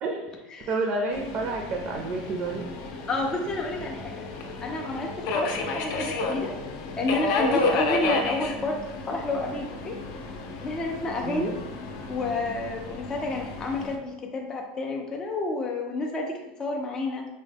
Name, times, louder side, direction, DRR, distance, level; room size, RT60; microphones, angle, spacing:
voice 1, 0.0-0.3 0.7-2.7 11.2-11.5, right 3 dB, 40° right, 1 dB, 0.5 m, -29 dB
Subway metro underground, 1.1-13.9, left 3 dB, 55° left, 0.6 m, -31 dB
voice 2, 3.1-4.3 4.6-6.5 7.0-10.0 10.6-11.6 12.1-17.3, left 2 dB, 15° left, 0 dB, 0.4 m, -30 dB
5.2 x 2.1 x 3.4 m, 0.98 s
supercardioid pair, 155°, 4 cm